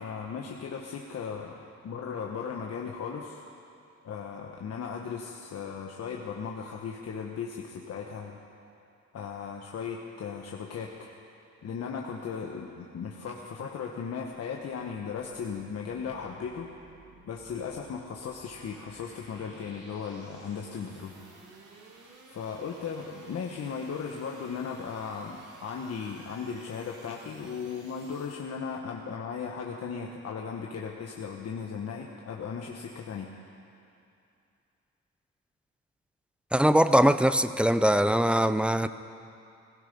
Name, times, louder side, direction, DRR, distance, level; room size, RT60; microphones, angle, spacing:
voice 1, 0.0-3.4 4.0-8.4 9.1-11.1 11.6-16.7 17.3-21.2 22.3-33.3, left 6 dB, 55° left, 0 dB, 1.3 m, -37 dB
sound 1, 15.1-28.4, right 2 dB, 85° right, 2.7 m, -55 dB
voice 2, 36.5-38.9, equal, 5° right, 12 dB, 0.5 m, -22 dB
17.0 x 16.0 x 5.4 m, 2.6 s
cardioid pair, 90°, 30 cm